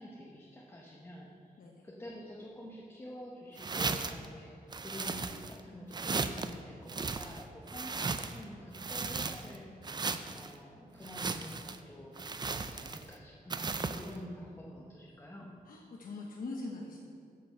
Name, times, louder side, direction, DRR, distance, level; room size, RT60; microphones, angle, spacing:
voice 1, 0.0-1.5 1.8-10.0 10.3-15.5, left 1 dB, 15° left, -3 dB, 0.9 m, -48 dB
sound 1, 3.6-4.3 4.7-5.6 5.9-6.5 6.9-8.4 8.7-9.6 9.8-10.5 11.0-11.8 12.2-13.1 13.5-14.1, right 4 dB, 30° right, 0.4 m, -36 dB
voice 2, 15.7-17.0, left 2 dB, 65° left, -2 dB, 1.0 m, -42 dB
8.4 x 6.8 x 6.7 m, 2.4 s
wide cardioid pair, 160°, 16 cm